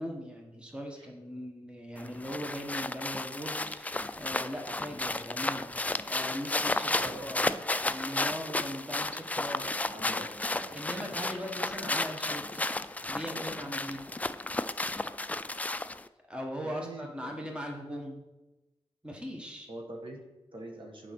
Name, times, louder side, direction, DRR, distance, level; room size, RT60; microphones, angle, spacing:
voice 1, 0.0-5.7 6.0-9.9 10.7-12.7 13.1-14.0 16.3-18.2 19.0-19.7, equal, 10° right, 1 dB, 1.4 m, -40 dB
sound 1, 2.0-16.1, left 2 dB, 15° left, 0.3 m, -33 dB
voice 2, 6.9-7.9 9.9-11.0 16.6-17.6 19.7-21.1, right 2 dB, 55° right, 2 dB, 1.5 m, -45 dB
8.2 x 4.9 x 5.9 m, 1.0 s
wide cardioid pair, 90°, 10 cm